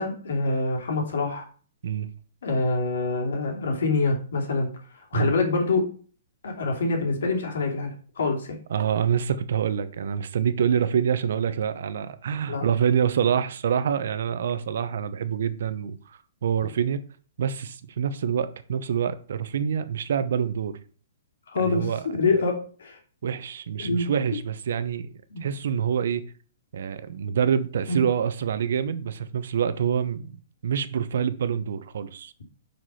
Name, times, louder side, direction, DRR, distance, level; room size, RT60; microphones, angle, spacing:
voice 1, 0.0-1.4 2.4-4.7 5.0-5.9 6.4-8.6 12.5-12.7 21.5-23.0 23.8-24.1 25.3-25.4 27.9-28.0, left 3 dB, 80° left, 2.9 m, -25 dB
voice 2, 8.7-17.0 17.4-20.8 21.6-22.0 23.2-25.1 25.4-26.3 26.7-30.4 30.6-32.3, right 8 dB, 65° right, 0.9 m, -26 dB
6.0 x 5.2 x 5.7 m
hypercardioid pair, 165°, 0 cm